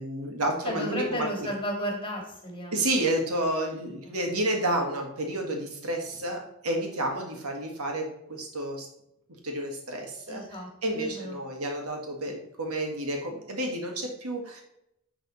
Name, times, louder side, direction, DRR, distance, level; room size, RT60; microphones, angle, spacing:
voice 1, 0.0-1.5 2.7-8.9 9.4-14.6, right 1 dB, 85° right, 1 dB, 2.0 m, -30 dB
voice 2, 0.6-3.0 4.1-4.2 10.3-11.4, equal, 25° left, 1 dB, 1.9 m, -34 dB
10.5 x 4.0 x 4.2 m, 0.80 s
head